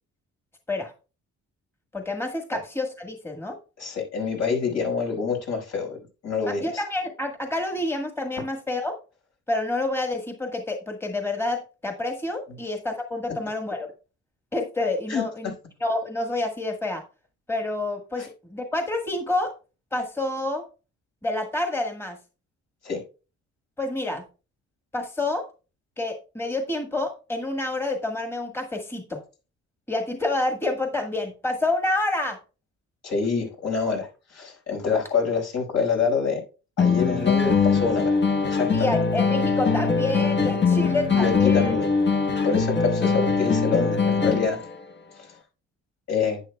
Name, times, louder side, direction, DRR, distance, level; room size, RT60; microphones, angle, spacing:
voice 1, 1.9-3.6 6.5-8.9 9.5-13.9 14.5-15.5 15.8-17.0 17.5-19.5 19.9-20.6 21.2-22.2 23.8-24.2 24.9-25.5 26.0-29.2 29.9-32.4 38.7-41.7, left 2 dB, 10° left, 5 dB, 1.5 m, -28 dB
voice 2, 3.8-6.8 15.1-15.5 18.2-18.3 22.8-23.0 33.0-36.4 36.8-38.2 38.4-38.9 41.1-41.9 42.4-44.7 45.1-45.4 46.1-46.4, left 5 dB, 60° left, 0 dB, 5.3 m, -26 dB
sound 1, 36.8-44.7, left 5 dB, 35° left, 1.2 m, -22 dB
11.0 x 9.3 x 2.3 m, 0.32 s
cardioid pair, 90°, 30 cm